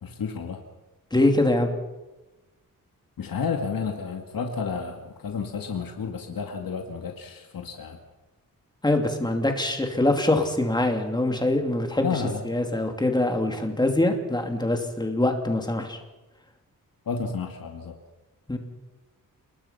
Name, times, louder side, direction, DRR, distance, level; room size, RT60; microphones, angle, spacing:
voice 1, 0.0-0.6 3.2-8.0 12.0-12.4 17.1-18.0, left 5 dB, 85° left, 3 dB, 2.3 m, -31 dB
voice 2, 1.1-1.7 8.8-16.0 18.5-18.6, left 1 dB, 10° left, 4 dB, 2.8 m, -24 dB
29.0 x 20.5 x 5.8 m, 1.1 s
wide cardioid pair, 180°, 34 cm